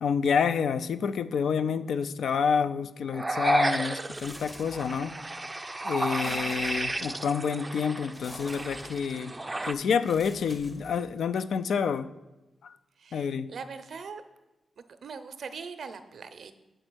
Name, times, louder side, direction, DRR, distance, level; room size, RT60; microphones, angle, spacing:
voice 1, 0.0-5.1 5.8-9.3 9.7-12.1 12.6-12.7 13.1-13.5, left 6 dB, 80° left, 13 dB, 0.3 m, -28 dB
sound 1, 3.1-9.7, right 2 dB, 20° right, 0.4 m, -32 dB
sound 2, 4.1-5.2 6.1-7.3 8.1-9.2 10.0-11.3, left 1 dB, 20° left, 0.6 m, -49 dB
voice 2, 6.2-6.7 13.0-14.2 14.8-16.5, right 5 dB, 65° right, 10 dB, 0.6 m, -42 dB
7.9 x 4.3 x 6.1 m, 1.0 s
cardioid pair, 95°, 0 cm